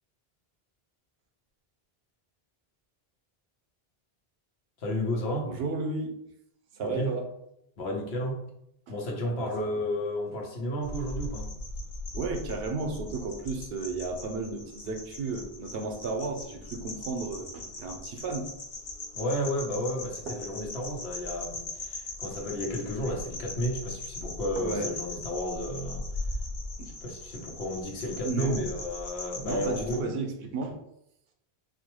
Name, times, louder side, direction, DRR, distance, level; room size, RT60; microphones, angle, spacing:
voice 1, 4.8-5.6 6.8-7.2 7.8-8.5 8.9-11.5 19.1-26.1 27.0-30.0, left 1 dB, 85° left, 0 dB, 1.1 m, -32 dB
voice 2, 5.5-6.2 6.7-7.3 8.9-9.0 9.3-9.5 12.1-18.5 20.3-20.4 24.6-24.9 26.8-26.9 28.2-28.6 29.4-30.8, right 3 dB, 75° right, 5 dB, 0.8 m, -33 dB
sound 1, 10.8-30.0, left 2 dB, 60° left, 0.9 m, -39 dB
4.4 x 2.1 x 2.9 m, 0.78 s
omnidirectional pair, 1.0 m